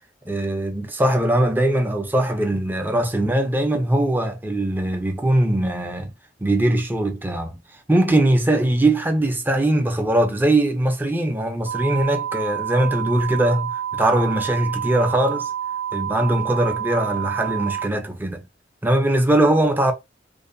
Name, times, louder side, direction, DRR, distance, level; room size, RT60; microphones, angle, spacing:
voice 1, 0.2-6.1 6.4-7.6 7.9-15.5 15.9-18.5 18.8-19.9, right 1 dB, 10° right, 0.4 m, -21 dB
sound 1, 11.6-17.9, right 9 dB, 85° right, 0.7 m, -28 dB
2.6 x 2.0 x 2.4 m
head